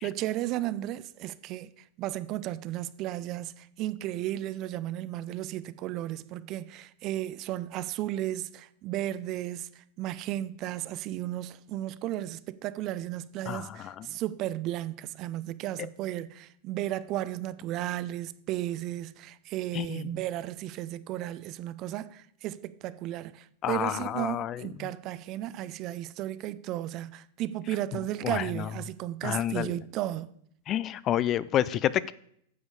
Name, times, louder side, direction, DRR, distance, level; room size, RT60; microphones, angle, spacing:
voice 1, 0.0-30.3, right 14 dB, 40° right, 0.5 m, -34 dB
voice 2, 13.5-14.1 19.7-20.1 23.6-24.7 28.2-28.7 29.2-29.7 30.7-32.1, left 11 dB, 35° left, 0.4 m, -29 dB
9.6 x 7.1 x 4.8 m
hypercardioid pair, 130°, 0 cm